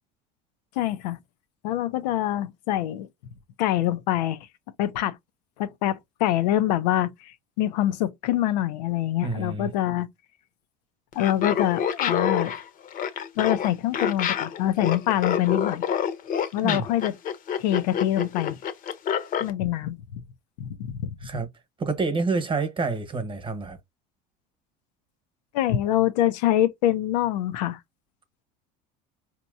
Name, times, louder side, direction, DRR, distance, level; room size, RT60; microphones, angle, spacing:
voice 1, 0.8-1.2 1.6-3.1 3.6-4.4 4.8-5.2 5.6-10.1 11.1-12.5 13.4-15.8 16.5-17.1 17.6-18.6 19.4-20.2 20.6-21.2 25.5-27.8, left 12 dB, 85° left, 0.6 m, -25 dB
voice 2, 9.2-9.7 16.6-16.9 21.2-21.5 21.8-23.8, right 4 dB, 25° right, 1.1 m, -28 dB
Laughter, 11.1-19.5, left 8 dB, 40° left, 0.8 m, -27 dB
4.4 x 2.9 x 2.6 m
supercardioid pair, 105°, 21 cm